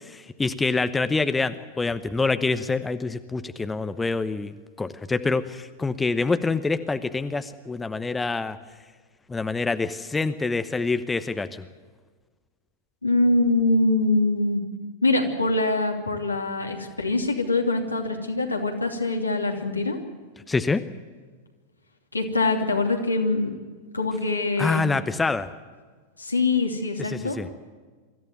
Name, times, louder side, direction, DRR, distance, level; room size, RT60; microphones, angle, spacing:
voice 1, 0.0-8.6 9.3-11.6 20.5-20.8 24.6-25.5 27.0-27.5, left 3 dB, 10° left, 11 dB, 0.9 m, -26 dB
voice 2, 13.0-14.6 15.0-20.0 22.1-23.5 23.9-24.9 26.2-27.4, left 2 dB, 85° left, 2 dB, 2.8 m, -23 dB
24.0 x 14.5 x 9.2 m, 1.4 s
figure-of-eight pair, 90°, 0 cm